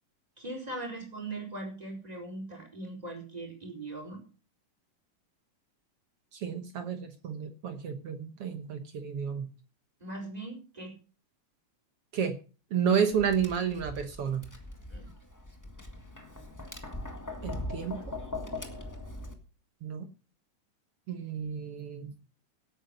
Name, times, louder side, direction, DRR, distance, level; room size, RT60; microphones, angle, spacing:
voice 1, 0.4-4.2 10.0-10.9 14.9-15.1, right 2 dB, 10° right, 2 dB, 4.5 m, -40 dB
voice 2, 6.3-9.5 12.1-12.4 12.7-14.4 17.4-18.0 19.8-20.1 21.1-22.1, right 7 dB, 60° right, 8 dB, 1.8 m, -31 dB
Tap, 13.1-19.3, left 2 dB, 20° left, 0.5 m, -40 dB
17.5 x 8.9 x 5.3 m, 0.36 s
omnidirectional pair, 3.8 m